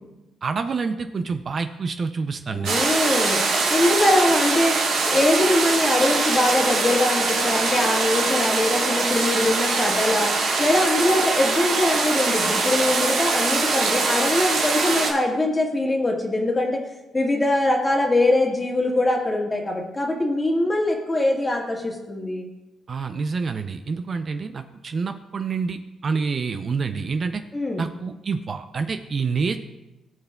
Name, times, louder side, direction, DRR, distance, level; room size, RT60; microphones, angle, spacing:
voice 1, 0.4-2.8 22.9-27.4 27.8-29.6, right 5 dB, 45° right, 8 dB, 0.4 m, -27 dB
voice 2, 2.5-3.4 3.7-4.7 5.1-10.3 10.6-16.8 17.1-22.5 27.5-27.8, left 1 dB, 20° left, 0 dB, 1.7 m, -22 dB
sound 1, 2.6-15.1, right 3 dB, 80° right, 1.6 m, -23 dB
17.0 x 5.7 x 2.3 m, 0.99 s
cardioid pair, 90°, 0 cm